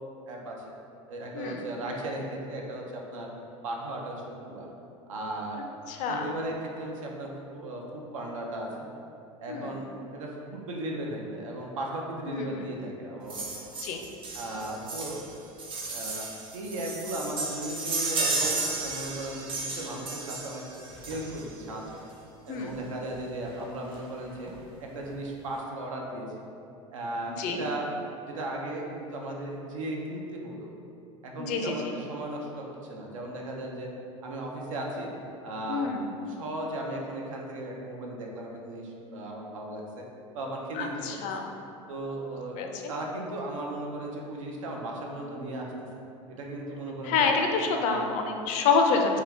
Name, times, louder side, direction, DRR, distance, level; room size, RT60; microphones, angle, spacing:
voice 1, 0.3-0.7 1.1-3.3 3.6-4.7 5.1-5.6 6.1-8.9 9.4-13.7 14.3-15.2 15.9-19.5 19.8-20.6 21.1-22.0 22.5-24.5 24.8-26.3 26.9-27.9 28.4-30.7 31.2-32.6 32.9-33.9 34.2-35.1 35.4-35.9 36.3-40.0 40.3-41.2 41.9-42.6 42.9-45.7 46.3-47.4 47.8-48.1, right 1 dB, 80° right, -1 dB, 0.5 m, -36 dB
voice 2, 1.3-1.7 5.9-6.4 9.5-9.7 12.2-12.7 13.8-14.0 22.5-22.7 27.3-27.6 31.4-31.7 35.7-36.1 40.7-41.5 42.6-42.9 47.0-49.2, left 4 dB, 50° left, 3 dB, 0.4 m, -27 dB
sound 1, 13.3-21.6 22.7-22.8 23.1-23.2 23.5-23.6 24.0-24.6 25.0-25.1, right 3 dB, 30° right, 0.6 m, -33 dB
2.8 x 2.4 x 3.3 m, 2.6 s
hypercardioid pair, 85°, 17 cm